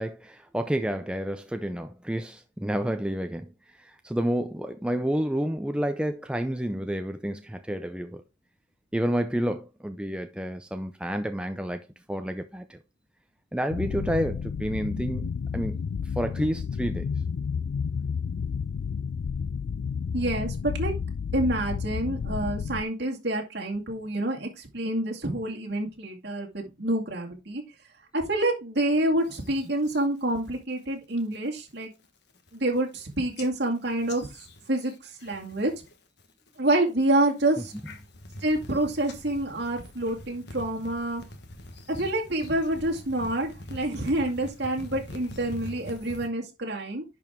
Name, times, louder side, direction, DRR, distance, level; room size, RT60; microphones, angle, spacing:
voice 1, 0.0-3.5 3.8-8.2 8.9-12.8 13.5-15.3 15.5-15.9 16.2-17.1, equal, 5° right, 0.5 m, -30 dB
sound 1, 13.7-22.8, left 6 dB, 80° left, 0.4 m, -31 dB
voice 2, 20.1-20.9 21.3-27.6 28.1-31.9 32.5-34.3 34.7-35.7 36.6-37.7 38.4-41.2 41.9-47.0, right 1 dB, 60° right, 2.3 m, -27 dB
sound 2, 29.2-30.0 30.4-30.8 31.2-31.6 32.0-32.1 32.3-33.0 33.4-35.9 36.2-36.7 37.2-46.3, left 1 dB, 60° left, 1.4 m, -44 dB
10.5 x 4.7 x 3.6 m
head